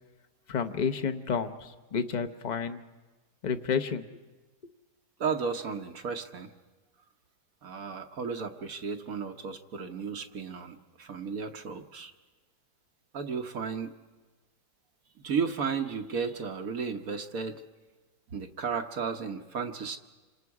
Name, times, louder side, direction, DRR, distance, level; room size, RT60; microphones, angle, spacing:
voice 1, 0.5-2.8 3.4-4.0, left 6 dB, 35° left, 8 dB, 0.7 m, -30 dB
voice 2, 5.2-6.5 7.6-12.1 13.1-13.9 15.2-17.6 18.3-20.0, right 5 dB, 60° right, 6 dB, 1.4 m, -34 dB
27.5 x 26.0 x 4.8 m, 1.3 s
omnidirectional pair, 1.8 m